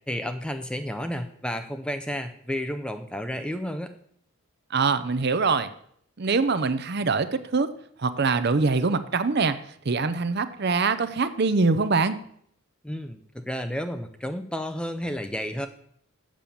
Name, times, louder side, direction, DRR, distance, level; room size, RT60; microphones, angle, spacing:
voice 1, 0.1-3.9 12.8-15.7, equal, 5° left, 8 dB, 0.4 m, -31 dB
voice 2, 4.7-5.7 6.2-7.7 8.0-9.6 9.9-12.2, right 4 dB, 45° right, 12 dB, 0.6 m, -23 dB
7.5 x 6.7 x 7.0 m, 0.66 s
head